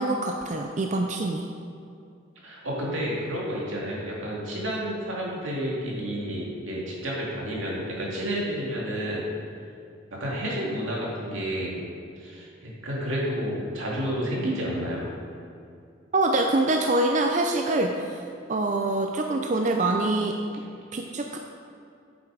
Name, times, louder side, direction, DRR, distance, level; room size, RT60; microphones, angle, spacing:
voice 1, 0.0-1.5 16.1-18.2 18.5-20.4 20.9-21.4, right 2 dB, 35° right, 3 dB, 0.4 m, -25 dB
voice 2, 2.4-9.2 10.2-11.8 12.2-15.0, equal, 85° right, -4 dB, 2.3 m, -30 dB
7.8 x 7.1 x 5.0 m, 2.5 s
head